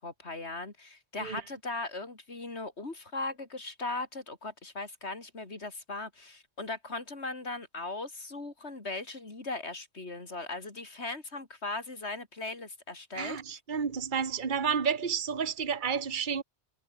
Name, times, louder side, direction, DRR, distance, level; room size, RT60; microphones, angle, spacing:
voice 1, 0.0-13.4, left 3 dB, 75° left, 3.7 m, -38 dB
voice 2, 13.1-16.4, right 6 dB, 45° right, 1.5 m, -31 dB
omnidirectional pair, 1.2 m